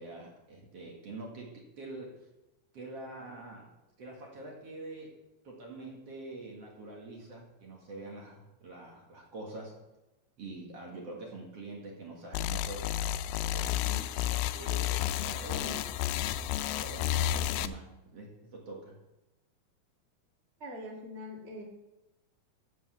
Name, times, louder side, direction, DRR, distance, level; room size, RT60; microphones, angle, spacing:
voice 1, 0.0-2.2 2.7-3.7 4.0-5.1 5.4-9.7 10.4-12.9 13.4-15.9 16.8-18.9, right 2 dB, 45° right, -1 dB, 2.5 m, -45 dB
sound 1, 12.3-17.7, left 12 dB, 85° left, 2.4 m, -31 dB
voice 2, 20.6-21.6, left 1 dB, 25° right, -2 dB, 1.4 m, -42 dB
8.5 x 8.2 x 7.1 m, 0.97 s
omnidirectional pair, 4.4 m